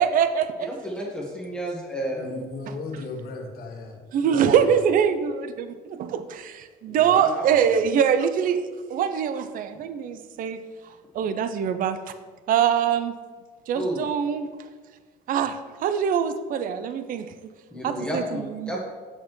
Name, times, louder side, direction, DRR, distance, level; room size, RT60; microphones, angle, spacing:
voice 1, 0.0-0.7 4.1-10.6 11.1-12.1 12.5-13.2 13.7-14.5 15.3-17.3 17.8-18.8, right 8 dB, 55° right, 11 dB, 0.5 m, -24 dB
voice 2, 0.7-2.4 6.9-7.5 13.7-14.1 17.7-18.8, equal, 5° left, -4 dB, 1.3 m, -31 dB
voice 3, 2.1-4.8, left 3 dB, 65° left, 2 dB, 1.3 m, -37 dB
7.1 x 6.4 x 3.1 m, 1.4 s
cardioid pair, 110°, 17 cm